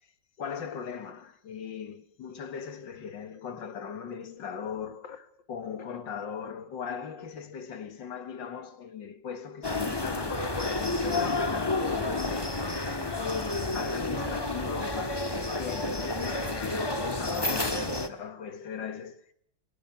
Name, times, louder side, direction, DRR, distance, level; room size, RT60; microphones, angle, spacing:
voice 1, 0.4-12.6 13.2-19.2, left 6 dB, 85° left, 2.3 m, -39 dB
sound 1, 9.6-18.1, left 2 dB, 15° left, 1.5 m, -30 dB
22.0 x 20.5 x 7.2 m
omnidirectional pair, 1.9 m